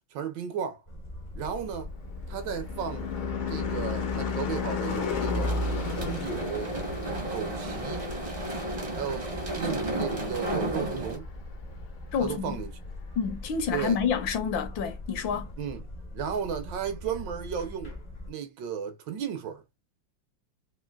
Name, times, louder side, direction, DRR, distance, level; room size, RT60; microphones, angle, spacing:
voice 1, 0.1-0.8 1.3-1.9 2.3-3.1 3.5-5.6 5.9-6.7 7.3-8.1 9.0-11.3 12.2-12.8 13.7-14.0 15.6-15.8 16.1-18.0 18.3-19.6, right 7 dB, 70° right, 1.2 m, -34 dB
sound 1, 0.9-18.3, left 2 dB, 45° left, 0.5 m, -42 dB
Car passing by / Truck / Engine, 1.6-10.3, left 4 dB, 90° left, 1.7 m, -33 dB
sound 2, 5.3-11.2, right 1 dB, 35° right, 0.5 m, -33 dB
voice 2, 12.1-12.6 13.2-15.5, left 6 dB, 75° left, 1.4 m, -28 dB
3.7 x 2.8 x 2.2 m
omnidirectional pair, 2.2 m